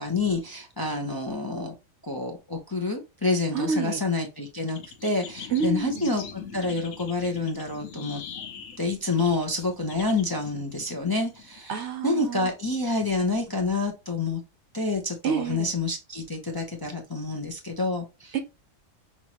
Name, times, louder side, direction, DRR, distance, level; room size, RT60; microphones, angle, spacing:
voice 1, 0.0-1.7 2.0-8.2 8.8-14.4 14.7-18.4, left 3 dB, 20° left, 0.6 m, -28 dB
voice 2, 3.5-4.0 5.5-6.1 11.7-12.5 15.2-15.8 18.3-18.4, right 6 dB, 60° right, 0.9 m, -28 dB
sound 1, 4.7-11.6, left 7 dB, 85° left, 1.3 m, -42 dB
6.0 x 2.9 x 2.9 m
omnidirectional pair, 1.4 m